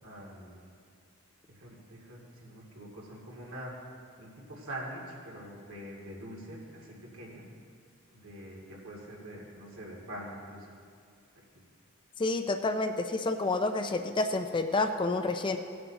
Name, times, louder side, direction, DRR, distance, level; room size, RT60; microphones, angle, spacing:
voice 1, 0.0-0.6 1.5-3.7 4.2-7.5 8.1-10.7, right 1 dB, 65° right, -4 dB, 2.4 m, -44 dB
voice 2, 12.2-15.6, left 2 dB, 20° left, 7 dB, 0.4 m, -29 dB
17.0 x 9.3 x 2.9 m, 2.3 s
head